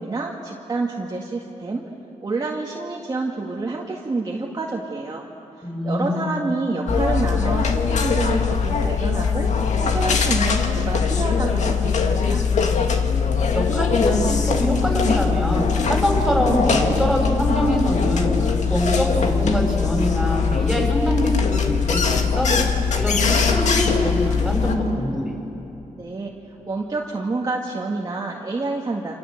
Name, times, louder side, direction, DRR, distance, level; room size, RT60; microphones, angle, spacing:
voice 1, 0.0-1.9 2.2-5.3 5.8-9.5 9.8-12.4 26.0-26.3 26.7-29.1, right 3 dB, 30° right, -2 dB, 2.0 m, -28 dB
voice 2, 5.6-6.4 13.5-22.5 22.9-25.3, equal, 5° left, -3 dB, 6.8 m, -23 dB
sound 1, 6.9-24.8, left 5 dB, 65° left, 2.1 m, -21 dB
28.0 x 26.5 x 8.0 m, 2.8 s
wide cardioid pair, 125°, 13 cm